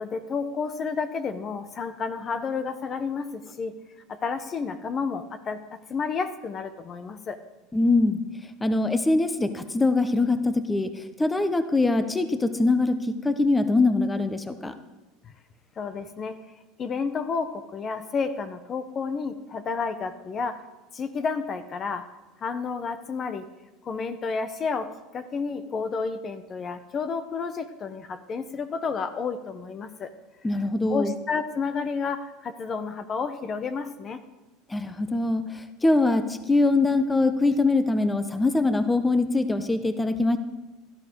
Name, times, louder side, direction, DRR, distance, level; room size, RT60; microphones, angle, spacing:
voice 1, 0.0-3.7 4.1-7.4 15.2-15.3 15.8-16.4 16.8-20.6 20.9-22.1 22.4-23.5 23.8-30.1 30.9-34.2, left 5 dB, 35° left, 10 dB, 1.1 m, -31 dB
voice 2, 7.7-8.2 8.6-14.7 30.4-31.1 34.7-40.4, left 2 dB, 10° left, 10 dB, 1.1 m, -23 dB
17.0 x 13.0 x 4.7 m, 1.1 s
supercardioid pair, 105°, 0 cm